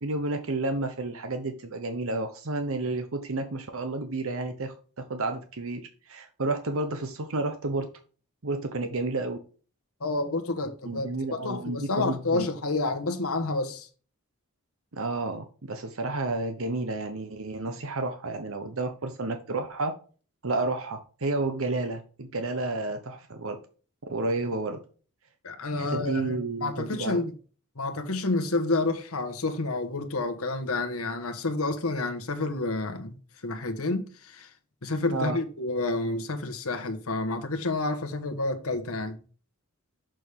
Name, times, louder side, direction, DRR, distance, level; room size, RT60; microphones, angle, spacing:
voice 1, 0.0-4.7 5.1-5.8 6.1-7.9 8.4-9.4 10.9-12.5 14.9-19.9 20.4-23.6 24.0-24.8 25.8-27.2 35.1-35.4, right 2 dB, 65° right, 1.0 m, -31 dB
voice 2, 10.0-13.9 25.4-27.3 27.8-33.2 33.4-34.5 34.8-39.2, left 2 dB, 75° left, 1.3 m, -29 dB
6.7 x 6.2 x 3.4 m
head